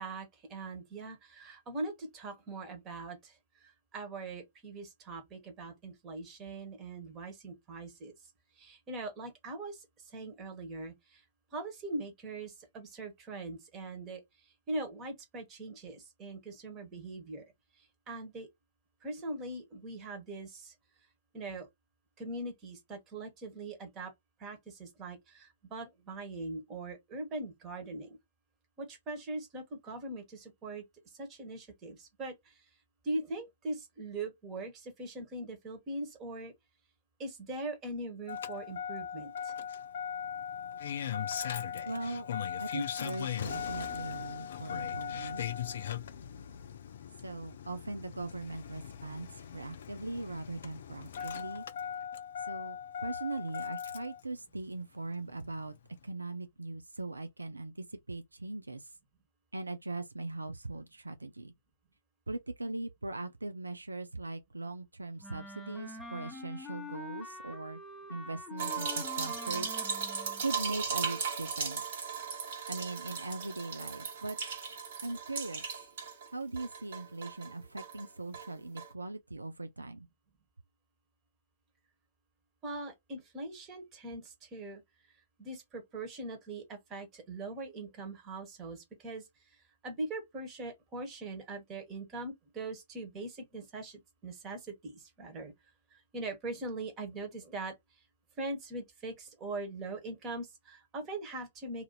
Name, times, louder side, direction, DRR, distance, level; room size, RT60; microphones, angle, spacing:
voice 1, 0.0-8.1 8.6-11.2 11.5-17.4 18.1-18.5 19.0-20.7 21.3-21.7 22.2-24.1 24.4-28.2 28.8-30.8 31.1-32.6 33.0-36.5 37.2-39.5 51.2-51.3 82.6-84.8 85.4-89.2 89.8-95.5 95.9-97.7 98.4-101.8, right 2 dB, 25° right, 1.3 m, -41 dB
Engine starting, 38.3-54.2 55.5-55.6, left 8 dB, 55° left, 0.4 m, -39 dB
voice 2, 41.9-42.3 42.6-45.4 47.2-51.7 52.5-55.7 56.0-57.7 58.1-58.8 59.5-61.5 62.3-67.8 68.1-69.8 70.4-72.0 72.7-74.4 75.0-75.6 76.3-80.1, right 2 dB, 80° right, 0.4 m, -40 dB
Wind instrument woodwind instrument, 65.2-70.5, left 3 dB, 5° left, 0.8 m, -45 dB
sound 1, 68.6-76.3 76.6-78.0 78.3-78.5 78.8-78.9, right 6 dB, 50° right, 1.3 m, -37 dB
2.8 x 2.6 x 4.0 m
figure-of-eight pair, 120°, 0 cm